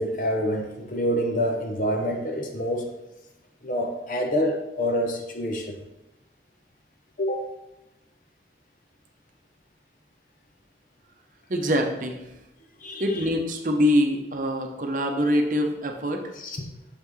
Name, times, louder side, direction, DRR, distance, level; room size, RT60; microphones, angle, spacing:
voice 1, 0.0-2.9 3.6-5.7 7.2-7.5 12.8-13.0 16.4-16.7, equal, 45° left, 3 dB, 0.8 m, -27 dB
voice 2, 11.5-12.2 13.0-16.3, equal, 45° right, 3 dB, 0.7 m, -24 dB
6.6 x 5.7 x 3.2 m, 0.95 s
head